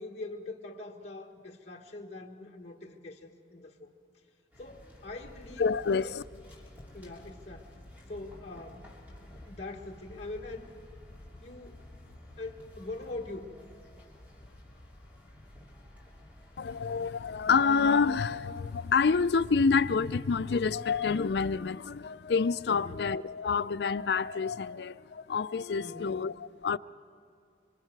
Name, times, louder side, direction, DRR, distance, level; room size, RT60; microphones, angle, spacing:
voice 1, 0.0-3.9 4.6-5.7 6.0-6.2 6.9-7.8 8.1-8.9 9.4-10.7 11.4-11.8 12.4-13.5 22.7-23.0 25.8-26.2, left 2 dB, 35° left, 1.5 m, -43 dB
sound 1, 4.5-20.2, left 1 dB, 10° right, 3.0 m, -52 dB
voice 2, 5.6-6.2 16.6-26.8, left 5 dB, 65° left, 0.4 m, -28 dB
26.0 x 24.5 x 4.6 m
head